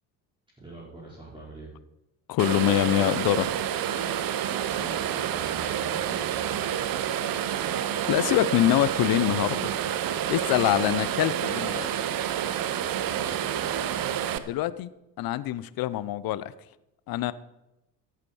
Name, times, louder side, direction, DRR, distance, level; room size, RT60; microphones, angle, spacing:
voice 1, 0.6-1.7 4.6-6.7 12.8-14.1, right 2 dB, 10° right, -7 dB, 4.9 m, -44 dB
voice 2, 2.3-3.5 8.1-9.7 10.3-12.0 14.5-14.9 15.2-16.5 17.1-17.3, left 13 dB, 45° left, 16 dB, 0.8 m, -25 dB
sound 1, 2.4-14.4, right 10 dB, 45° right, 0.9 m, -29 dB
16.0 x 8.5 x 4.7 m, 0.92 s
figure-of-eight pair, 60°, 50 cm